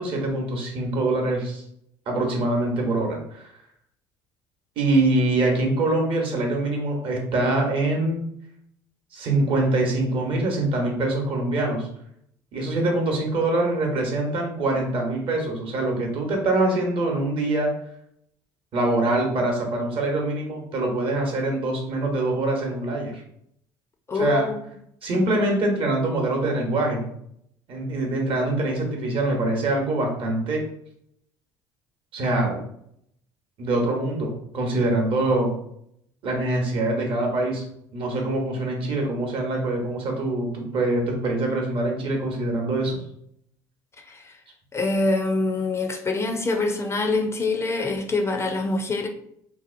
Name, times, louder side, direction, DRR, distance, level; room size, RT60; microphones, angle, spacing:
voice 1, 0.0-1.6 2.1-3.5 4.8-8.3 9.1-11.9 12.5-17.7 18.7-23.2 24.1-24.5 25.0-27.1 27.7-30.7 32.1-32.6 33.6-35.5 36.2-37.6 37.9-43.0, right 2 dB, 55° right, 1 dB, 0.9 m, -24 dB
voice 2, 24.1-24.6 44.0-44.4 44.7-49.1, left 3 dB, 25° left, 4 dB, 0.4 m, -25 dB
2.7 x 2.1 x 2.5 m, 0.71 s
hypercardioid pair, 70°, 11 cm